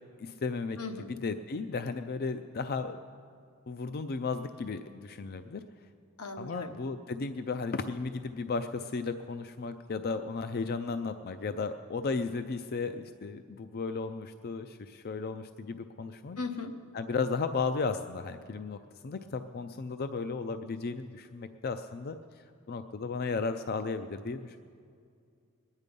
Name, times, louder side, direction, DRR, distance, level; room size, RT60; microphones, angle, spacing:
voice 1, 0.2-3.0 3.7-5.6 6.4-16.4 16.9-22.2 22.7-24.6, left 4 dB, 45° left, 9 dB, 0.4 m, -34 dB
voice 2, 0.8-1.1 6.2-6.7 16.4-16.8, left 3 dB, 85° left, 6 dB, 1.1 m, -37 dB
21.0 x 9.9 x 5.3 m, 2.2 s
head